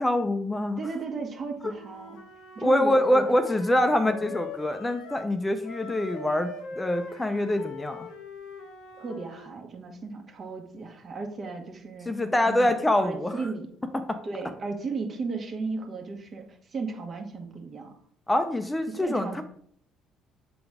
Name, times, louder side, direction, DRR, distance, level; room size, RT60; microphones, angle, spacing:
voice 1, 0.0-0.8 1.6-1.7 2.6-6.5 6.8-8.1 12.1-13.3 14.1-14.2 18.3-19.4, left 1 dB, 15° left, 8 dB, 0.6 m, -25 dB
voice 2, 0.8-2.2 2.5-3.3 3.6-4.4 9.0-12.1 12.5-13.7 14.2-17.9 18.9-19.4, right 4 dB, 45° right, 2 dB, 1.5 m, -35 dB
Wind instrument woodwind instrument, 1.6-5.4 5.6-9.6, left 4 dB, 75° left, 0.9 m, -42 dB
6.8 x 3.9 x 3.6 m, 0.63 s
hypercardioid pair, 60°, 0 cm